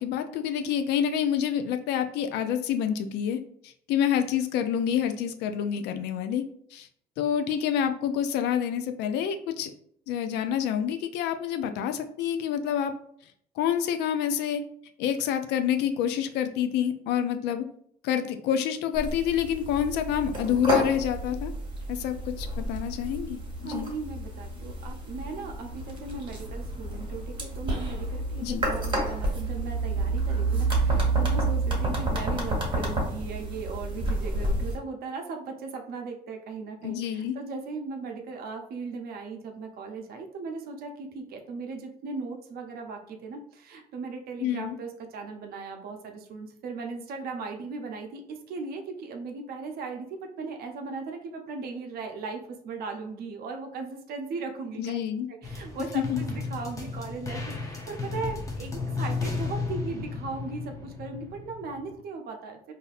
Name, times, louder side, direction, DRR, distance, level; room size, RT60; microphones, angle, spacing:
voice 1, 0.0-3.4 3.9-6.4 6.7-6.9 7.2-9.7 10.1-12.9 13.6-14.6 15.0-17.6 18.0-21.5 21.9-23.8 28.4-28.7 36.8-37.4 44.4-44.8 54.8-55.3 55.9-56.2, left 9 dB, 85° left, 8 dB, 0.4 m, -27 dB
sound 1, 18.9-34.8, right 2 dB, 30° right, 1.2 m, -29 dB
voice 2, 23.6-55.0 55.3-62.7, right 4 dB, 65° right, 3 dB, 0.6 m, -38 dB
sound 2, 55.4-62.0, left 4 dB, 20° left, 0.7 m, -34 dB
4.0 x 2.6 x 2.4 m, 0.65 s
cardioid pair, 110°, 17 cm